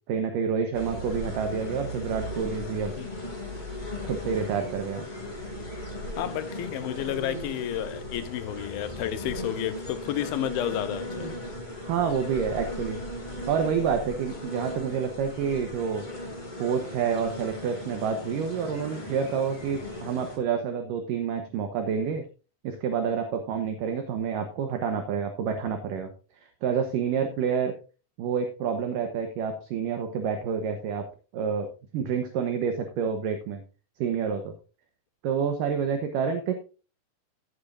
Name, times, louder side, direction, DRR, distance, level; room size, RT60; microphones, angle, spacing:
voice 1, 0.1-2.9 4.0-5.0 11.8-13.0 13.5-16.1 16.6-22.3 22.6-26.1 26.6-27.8 28.2-31.1 31.3-31.7 31.9-33.6 34.0-34.5 35.2-36.5, right 7 dB, 70° right, 2.4 m, -28 dB
sound 1, 0.7-20.4, left 1 dB, 15° left, 2.1 m, -37 dB
voice 2, 6.2-11.4, left 12 dB, 75° left, 2.3 m, -31 dB
15.5 x 8.5 x 2.6 m
omnidirectional pair, 4.7 m